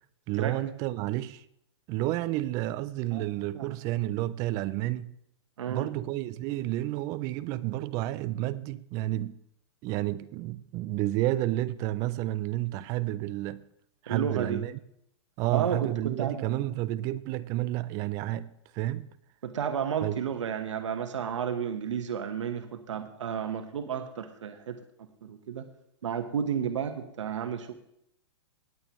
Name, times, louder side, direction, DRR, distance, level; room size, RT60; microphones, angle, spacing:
voice 1, 0.3-1.4 1.9-5.1 5.7-9.4 9.8-13.6 14.0-14.8 15.4-19.1 20.0-20.2, right 15 dB, 25° right, 0.3 m, -30 dB
voice 2, 3.1-3.8 5.6-5.9 14.1-14.6 15.5-16.5 19.4-25.7 26.0-27.7, right 7 dB, 85° right, 1.2 m, -32 dB
18.5 x 8.6 x 3.1 m
hypercardioid pair, 155°, 15 cm